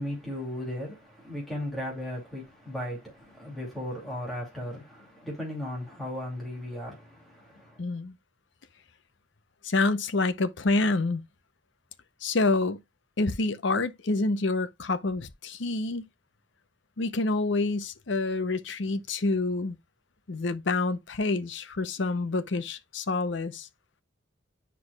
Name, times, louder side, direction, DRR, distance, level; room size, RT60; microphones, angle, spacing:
voice 1, 0.0-7.8, left 1 dB, ahead, 2.7 m, -36 dB
voice 2, 7.8-8.1 9.6-11.2 12.2-12.8 13.2-16.0 17.0-19.8 20.3-23.7, left 3 dB, 65° left, 0.7 m, -27 dB
9.6 x 4.7 x 2.3 m
head